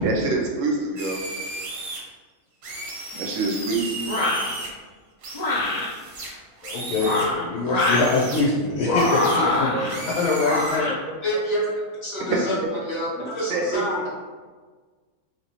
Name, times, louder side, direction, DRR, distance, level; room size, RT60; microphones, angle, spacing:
voice 1, 0.0-1.2 3.1-4.0 9.7-9.9 11.1-11.2 12.3-12.7 13.2-14.0, right 3 dB, 65° right, 0 dB, 0.9 m, -26 dB
sound 1, 1.0-2.0 2.6-4.7 5.2-7.3 7.8-8.4 9.0-9.4 9.9-10.8, right 2 dB, 85° right, 1.4 m, -35 dB
sound 2, 4.1-4.5 5.3-5.9 6.9-8.1 8.8-9.9 10.4-10.9, left 2 dB, 90° left, 0.3 m, -24 dB
voice 2, 6.6-11.0, left 3 dB, 75° left, -5 dB, 1.0 m, -24 dB
voice 3, 11.2-11.6 12.0-12.6 12.8-14.0, equal, 25° left, -6 dB, 0.9 m, -27 dB
3.0 x 2.9 x 2.8 m, 1.4 s
omnidirectional pair, 1.6 m